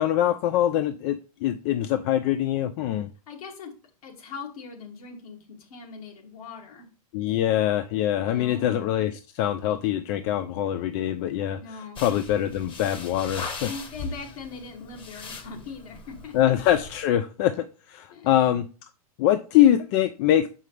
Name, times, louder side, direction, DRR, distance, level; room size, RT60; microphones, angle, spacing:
voice 1, 0.0-3.1 7.1-11.6 12.0-13.7 16.3-18.6 19.2-20.5, left 11 dB, 45° left, 10 dB, 0.5 m, -23 dB
voice 2, 3.3-3.7 4.0-6.9 8.2-8.7 11.6-12.0 13.6-16.4 18.1-18.4, left 5 dB, 70° left, 1 dB, 2.4 m, -40 dB
sound 1, 12.0-17.0, left 4 dB, 25° left, 1.2 m, -39 dB
6.5 x 5.5 x 3.3 m, 0.34 s
hypercardioid pair, 110°, 20 cm